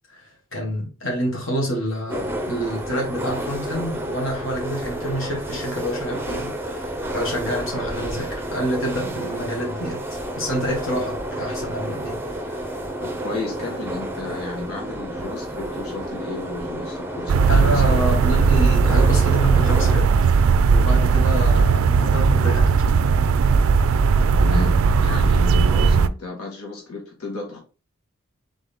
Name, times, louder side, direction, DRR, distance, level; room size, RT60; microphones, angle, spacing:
voice 1, 0.1-10.0 10.4-12.7 17.5-20.1 20.7-22.6, equal, 60° left, 1.7 m, -27 dB
sound 1, 2.1-20.0, right 1 dB, 10° right, 0.6 m, -31 dB
voice 2, 13.0-18.0 24.4-27.6, left 3 dB, 90° left, 1.6 m, -33 dB
sound 2, 17.3-26.1, right 5 dB, 70° right, 0.3 m, -17 dB
3.8 x 3.7 x 3.5 m
head